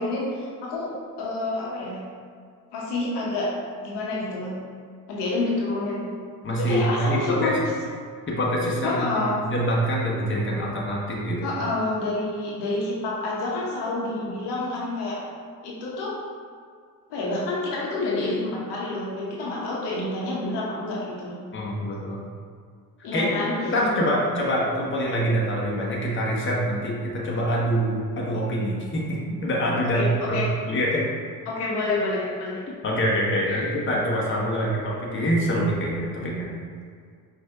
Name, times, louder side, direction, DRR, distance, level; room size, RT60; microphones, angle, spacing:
voice 1, 0.0-2.0 2.7-3.5 3.8-4.5 5.1-6.1 6.6-7.6 8.8-9.4 11.4-15.2 15.6-16.2 17.1-21.4 23.0-23.5 29.8-30.5 31.5-32.6 33.5-33.7 34.5-34.6, left 2 dB, 55° left, -5 dB, 1.1 m, -28 dB
voice 2, 6.4-7.6 8.3-9.0 9.4-11.5 21.5-22.2 23.1-23.3 23.6-31.1 32.8-36.5, equal, 25° left, -4 dB, 1.1 m, -25 dB
5.1 x 2.6 x 3.6 m, 2.1 s
figure-of-eight pair, 50°, 49 cm